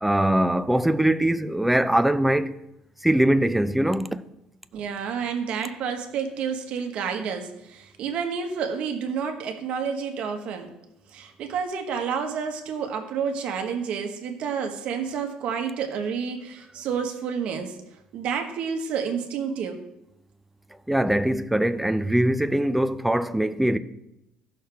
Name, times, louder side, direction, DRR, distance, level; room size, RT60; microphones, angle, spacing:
voice 1, 0.0-2.6 3.0-4.2 20.9-23.8, right 1 dB, 5° right, 0.4 m, -22 dB
voice 2, 4.7-10.7 11.1-17.8 18.1-19.8, right 6 dB, 60° right, 1.3 m, -29 dB
15.5 x 6.4 x 3.4 m
cardioid pair, 135°, 2 cm